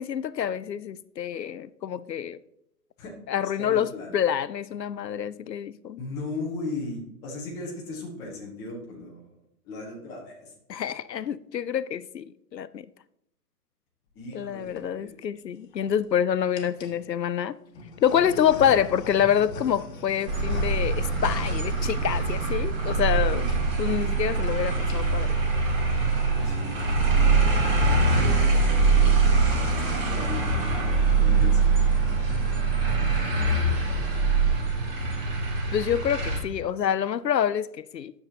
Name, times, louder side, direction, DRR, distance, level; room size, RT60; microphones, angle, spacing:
voice 1, 0.0-2.4 3.3-6.0 10.7-12.9 14.3-17.5 18.0-23.5 23.8-25.3 35.7-38.1, left 9 dB, 90° left, 0.5 m, -27 dB
voice 2, 3.6-4.1 6.0-9.3 9.6-10.5 14.1-15.2 26.4-27.4 28.1-29.1 29.5-30.7 31.2-31.8 32.3-32.8, left 2 dB, 5° left, 0.7 m, -38 dB
sound 1, 14.4-14.8 15.5-16.1 16.5-17.0 17.7-23.2 23.4-23.6 23.9-24.0 24.2-24.5 24.8-25.3, left 3 dB, 35° left, 1.3 m, -40 dB
sound 2, 20.3-36.4, right 3 dB, 35° right, 2.2 m, -23 dB
10.5 x 6.7 x 2.8 m
figure-of-eight pair, 130°, 49 cm